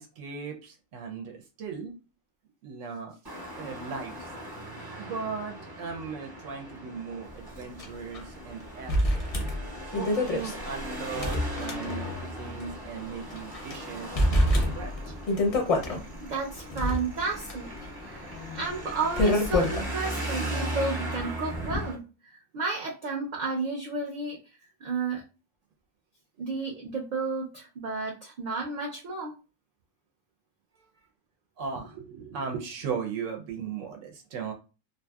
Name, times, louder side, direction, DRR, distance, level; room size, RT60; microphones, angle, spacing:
voice 1, 0.0-2.0 2.6-3.2 3.6-4.3 5.0-9.3 9.9-15.1 31.6-34.5, right 5 dB, 85° right, 2 dB, 0.9 m, -37 dB
Traffic noise roadway noise, 3.2-21.9, right 1 dB, 25° right, 0.7 m, -38 dB
sound 1, 7.8-7.9 8.1-8.2 8.9-12.3 12.6-12.7 13.3-13.8 14.2-16.0 16.6-19.9, left 1 dB, 45° left, 0.5 m, -27 dB
voice 2, 16.3-17.7 18.0-24.4 24.8-25.2 26.4-29.3, right 4 dB, 60° right, -2 dB, 0.4 m, -32 dB
2.6 x 2.5 x 2.2 m, 0.32 s
omnidirectional pair, 1.3 m